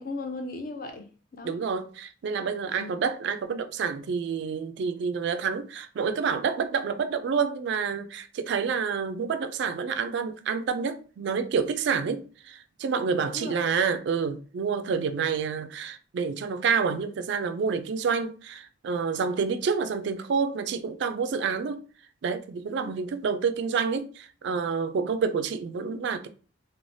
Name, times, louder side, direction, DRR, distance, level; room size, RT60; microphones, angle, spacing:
voice 1, 0.0-1.6 2.8-3.0 13.3-13.5 22.8-22.9, left 2 dB, 45° left, 0.5 m, -37 dB
voice 2, 1.4-21.8 22.2-26.3, right 5 dB, 60° right, 0.3 m, -28 dB
3.1 x 2.1 x 2.6 m
head